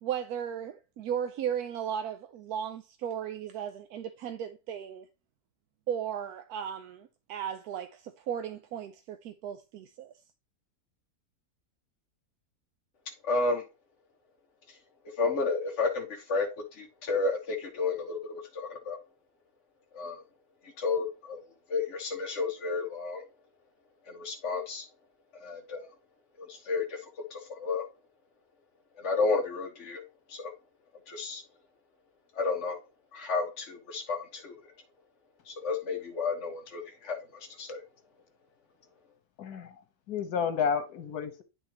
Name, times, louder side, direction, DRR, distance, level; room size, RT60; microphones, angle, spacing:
voice 1, 0.0-5.1 5.9-10.1, right 9 dB, 80° right, 1.1 m, -36 dB
voice 2, 13.2-13.6 15.2-16.5 16.8-19.0 19.9-20.2 20.8-21.4 21.7-23.2 24.1-24.8 25.3-25.9 26.4-27.0 27.3-27.8 29.0-30.0 30.3-30.5 31.1-31.4 32.3-32.8 33.1-34.5 35.5-37.8, left 4 dB, 50° left, 1.5 m, -31 dB
voice 3, 39.4-39.8 40.1-41.4, left 7 dB, 90° left, 1.6 m, -31 dB
11.0 x 3.7 x 2.9 m
omnidirectional pair, 1.6 m